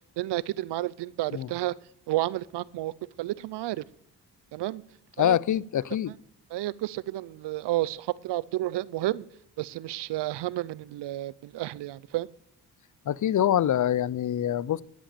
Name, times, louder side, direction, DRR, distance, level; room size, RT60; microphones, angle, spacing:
voice 1, 0.2-1.7 2.1-2.9 3.2-3.8 4.5-4.8 5.2-5.4 6.5-9.3 9.6-12.3, right 16 dB, 80° right, 22 dB, 0.6 m, -31 dB
voice 2, 5.2-6.1 13.1-14.8, left 11 dB, 50° left, 23 dB, 0.6 m, -25 dB
10.5 x 10.0 x 6.9 m, 0.69 s
cardioid pair, 65°, 40 cm